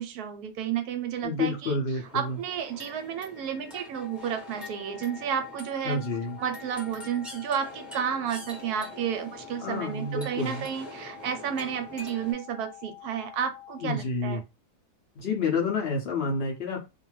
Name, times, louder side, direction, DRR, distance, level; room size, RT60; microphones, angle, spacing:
voice 1, 0.0-1.8 2.1-6.0 6.4-14.4, right 8 dB, 75° right, 6 dB, 1.0 m, -32 dB
voice 2, 1.2-2.4 5.9-6.4 9.6-10.7 13.8-14.4 15.2-16.9, left 3 dB, 70° left, -1 dB, 0.5 m, -29 dB
sound 1, 2.0-12.3, equal, ahead, 0.5 m, -45 dB
sound 2, 3.9-13.9, left 14 dB, 85° left, 1.2 m, -48 dB
2.5 x 2.3 x 3.1 m, 0.27 s
omnidirectional pair, 1.8 m